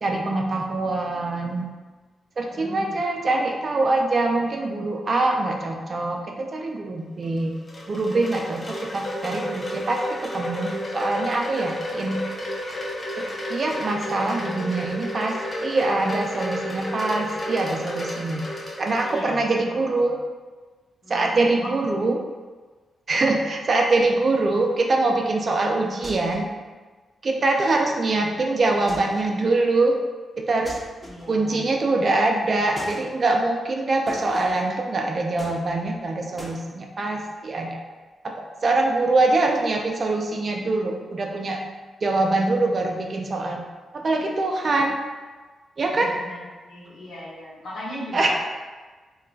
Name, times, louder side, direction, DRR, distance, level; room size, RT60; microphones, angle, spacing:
voice 1, 0.0-1.7 2.4-7.5 7.9-12.2 13.2-18.4 18.8-20.2 21.1-22.2 23.1-26.5 27.2-30.0 30.4-30.8 31.3-37.8 38.2-41.6 42.0-43.6 43.9-45.0 45.8-46.1 48.1-48.3, right 2 dB, 50° right, 1 dB, 0.4 m, -24 dB
voice 2, 2.5-3.0 19.0-20.2 21.0-21.8 23.1-23.3 31.0-31.7 45.9-48.3, left 1 dB, 65° left, -7 dB, 1.0 m, -38 dB
Wind chime, 7.2-19.5, left 1 dB, 40° left, 0.8 m, -32 dB
sound 1, 26.0-26.6 28.9-29.4 30.6-31.5 32.8-33.1 34.1-34.7 35.4-36.0 36.4-36.6, equal, 5° right, 0.8 m, -40 dB
2.3 x 2.2 x 3.8 m, 1.3 s
cardioid pair, 55°, 0 cm